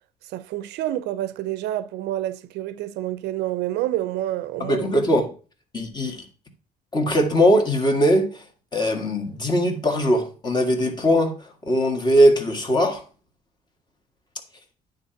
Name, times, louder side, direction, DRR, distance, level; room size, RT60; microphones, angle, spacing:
voice 1, 0.3-4.9, right 14 dB, 85° right, 0.5 m, -28 dB
voice 2, 4.6-5.3 5.7-6.2 6.9-8.4 8.7-13.0, equal, 25° left, 1.8 m, -20 dB
9.6 x 3.9 x 5.7 m
cardioid pair, 110°, 17 cm